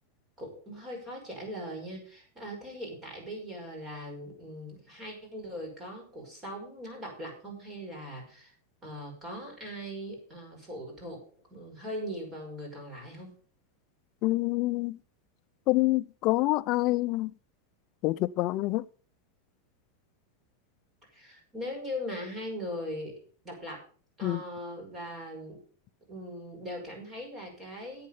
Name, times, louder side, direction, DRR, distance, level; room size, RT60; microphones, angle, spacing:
voice 1, 0.4-8.5 8.8-11.2 11.5-13.3 21.1-23.2 23.4-23.8 24.2-25.6 26.1-28.1, equal, 20° right, 5.4 m, -40 dB
voice 2, 14.2-15.0 15.7-17.3 18.0-18.8 24.2-24.4, left 19 dB, 40° left, 0.4 m, -26 dB
10.5 x 8.7 x 5.6 m
supercardioid pair, 150°, 0 cm